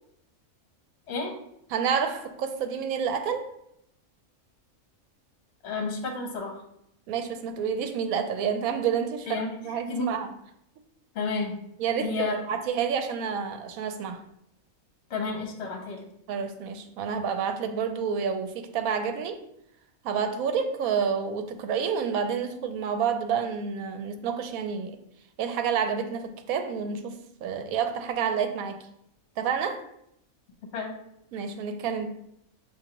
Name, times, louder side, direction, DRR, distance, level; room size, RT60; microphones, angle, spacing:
voice 1, 1.7-3.5 7.1-10.3 11.8-14.2 16.3-19.4 20.0-25.0 25.4-28.8 29.4-29.9 31.3-32.1, right 7 dB, 80° right, 1.0 m, -29 dB
voice 2, 5.6-6.6 9.3-10.1 11.1-11.5 12.0-12.3 15.1-16.0 30.7-31.0, left 3 dB, 55° left, 1.1 m, -31 dB
6.8 x 2.6 x 2.9 m
omnidirectional pair, 1.5 m